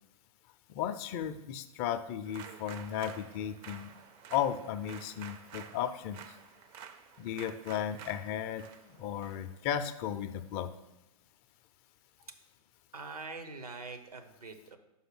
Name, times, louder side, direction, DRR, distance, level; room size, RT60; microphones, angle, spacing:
voice 1, 0.7-3.9 4.3-6.2 7.2-10.7, left 9 dB, 35° left, 10 dB, 0.4 m, -35 dB
sound 1, 2.2-10.6, right 8 dB, 25° right, 0.4 m, -51 dB
voice 2, 12.9-14.8, right 3 dB, 85° right, 8 dB, 0.9 m, -44 dB
5.6 x 5.0 x 6.1 m, 0.93 s
figure-of-eight pair, 110°, 19 cm